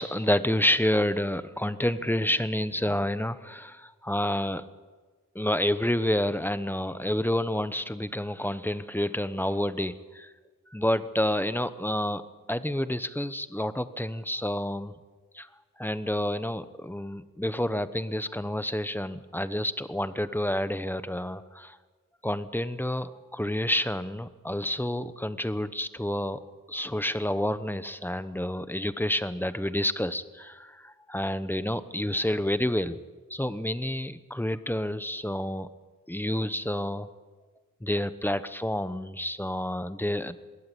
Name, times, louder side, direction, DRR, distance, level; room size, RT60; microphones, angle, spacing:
voice 1, 0.0-4.6 5.3-10.3 10.7-12.2 12.5-14.9 15.3-15.5 15.8-21.8 22.2-26.4 26.7-33.0 33.3-35.7 36.1-37.1 37.8-40.4, left 1 dB, 5° left, 13 dB, 0.9 m, -29 dB
22.0 x 17.5 x 8.5 m, 1.4 s
wide cardioid pair, 90°, 33 cm